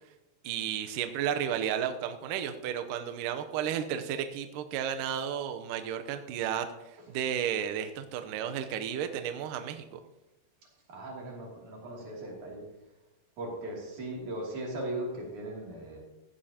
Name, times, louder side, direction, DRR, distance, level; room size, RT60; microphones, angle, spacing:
voice 1, 0.4-6.7 7.1-9.8, right 9 dB, 80° right, 7 dB, 1.9 m, -33 dB
voice 2, 10.9-12.6 13.4-16.0, right 1 dB, 50° right, -2 dB, 4.0 m, -38 dB
15.5 x 15.5 x 2.9 m, 1.0 s
omnidirectional pair, 4.9 m